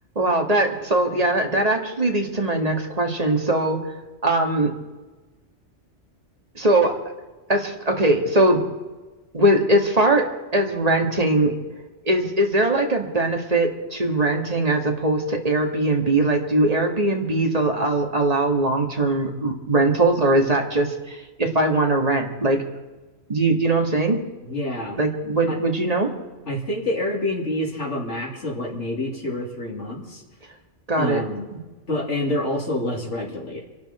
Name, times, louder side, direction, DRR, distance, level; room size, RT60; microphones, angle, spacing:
voice 1, 0.2-3.8 4.2-4.7 6.6-7.0 7.5-8.6 9.3-11.6 12.0-22.6 23.3-24.3 25.0-26.1 30.9-31.2, right 2 dB, 30° right, 2 dB, 2.2 m, -21 dB
voice 2, 24.5-25.0 25.5-25.6 26.5-30.2 31.0-31.4 31.9-33.6, left 1 dB, 80° left, -3 dB, 3.4 m, -27 dB
26.5 x 12.0 x 4.4 m, 1.2 s
omnidirectional pair, 1.2 m